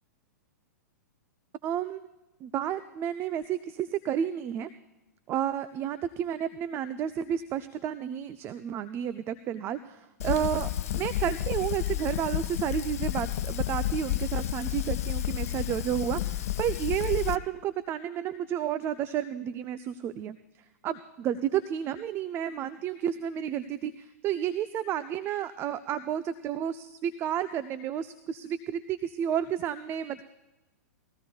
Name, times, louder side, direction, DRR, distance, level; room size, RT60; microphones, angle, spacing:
voice 1, 1.6-2.0 2.4-4.7 5.3-20.4 20.8-30.2, right 10 dB, 25° right, 12 dB, 0.5 m, -31 dB
Fire, 10.2-17.4, left 13 dB, 60° left, 0.5 m, -31 dB
20.5 x 15.5 x 2.4 m, 1.0 s
figure-of-eight pair, 110°, 9 cm